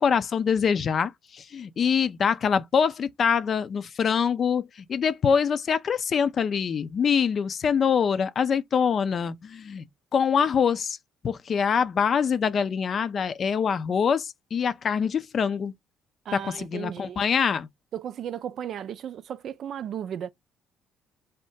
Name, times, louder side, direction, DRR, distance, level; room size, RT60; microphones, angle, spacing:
voice 1, 0.0-9.9 10.1-11.0 11.2-15.7 16.3-17.7, left 6 dB, 50° left, 0.4 m, -24 dB
voice 2, 16.3-17.2 17.9-20.3, right 9 dB, 60° right, 0.4 m, -35 dB
2.8 x 2.1 x 3.4 m
hypercardioid pair, 55°, 0 cm